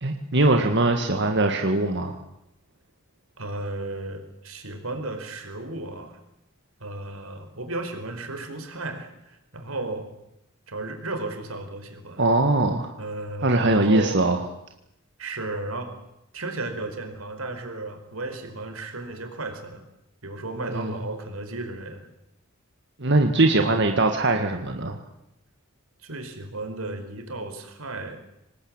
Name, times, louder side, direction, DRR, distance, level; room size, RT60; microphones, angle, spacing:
voice 1, 0.0-2.1 12.2-12.9 13.4-14.4 20.7-20.9 23.0-25.0, right 2 dB, 55° right, 4 dB, 1.9 m, -21 dB
voice 2, 3.4-6.2 6.8-10.1 10.7-12.3 13.0-14.3 15.2-15.9 16.3-19.8 20.2-22.1 23.5-23.9 26.0-28.2, right 2 dB, 85° right, 6 dB, 4.8 m, -34 dB
25.5 x 19.5 x 8.9 m, 0.84 s
head